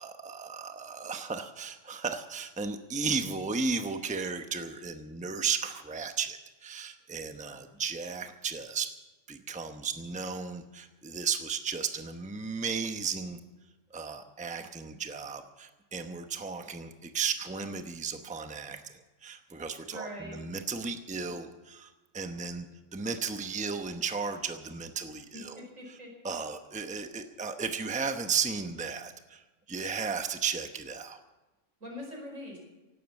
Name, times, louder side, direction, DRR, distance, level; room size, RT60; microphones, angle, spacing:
voice 1, 0.0-8.9 9.3-13.4 13.9-26.0 26.2-31.2, right 5 dB, 5° right, 7 dB, 0.8 m, -35 dB
voice 2, 19.9-20.4 25.3-26.1 31.8-32.6, equal, 80° right, 0 dB, 5.5 m, -42 dB
17.0 x 12.0 x 7.2 m, 1.1 s
omnidirectional pair, 1.3 m